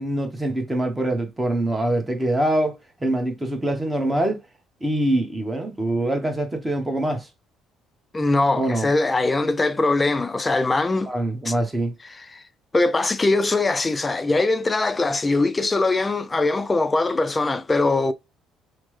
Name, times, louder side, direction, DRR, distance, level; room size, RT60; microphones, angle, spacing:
voice 1, 0.0-2.7 3.0-4.4 4.8-7.3 8.6-8.9 11.0-11.9, right 1 dB, 15° right, 1.0 m, -24 dB
voice 2, 8.1-11.1 11.5-11.6 12.1-12.4 12.7-18.1, left 2 dB, 20° left, 0.4 m, -21 dB
3.1 x 2.1 x 3.1 m
supercardioid pair, 80°, 0 cm